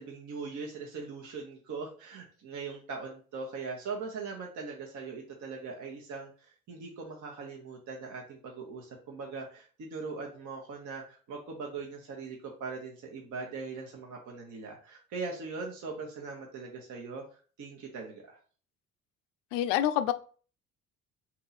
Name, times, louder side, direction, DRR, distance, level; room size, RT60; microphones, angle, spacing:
voice 1, 0.0-17.2 17.6-18.4, right 4 dB, 45° right, 0 dB, 1.0 m, -40 dB
voice 2, 19.5-20.1, left 12 dB, 65° left, 11 dB, 0.5 m, -26 dB
3.7 x 2.9 x 3.9 m, 0.41 s
figure-of-eight pair, 55°, 41 cm